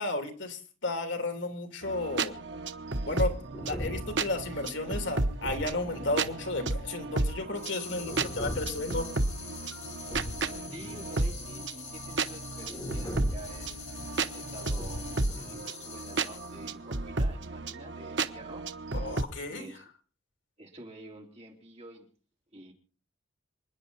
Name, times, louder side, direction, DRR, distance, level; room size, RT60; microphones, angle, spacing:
voice 1, 0.0-2.3 3.1-9.1 18.9-19.7, left 2 dB, 70° left, 6 dB, 2.8 m, -33 dB
sound 1, 1.8-19.2, right 3 dB, 65° right, 1.0 m, -33 dB
sound 2, 3.5-6.8 7.9-11.1 11.4-11.5 12.6-15.6, equal, 20° left, 4.3 m, -41 dB
sound 3, 7.5-16.7, left 6 dB, 40° left, 4.4 m, -45 dB
voice 2, 10.7-13.9 14.3-18.7 19.5-19.9 20.6-22.1 22.5-22.7, right 1 dB, 30° right, 0 dB, 3.6 m, -48 dB
27.5 x 10.0 x 4.2 m, 0.40 s
head